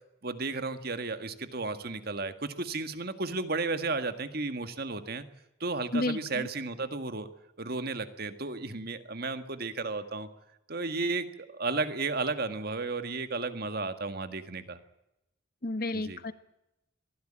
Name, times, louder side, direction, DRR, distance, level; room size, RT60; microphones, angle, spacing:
voice 1, 0.2-5.3 5.6-7.3 7.6-10.3 10.7-14.8 15.9-16.2, right 3 dB, 50° right, 9 dB, 1.8 m, -33 dB
voice 2, 5.9-6.5 15.6-16.3, left 2 dB, 50° left, 12 dB, 1.3 m, -31 dB
23.0 x 15.5 x 8.9 m, 0.88 s
head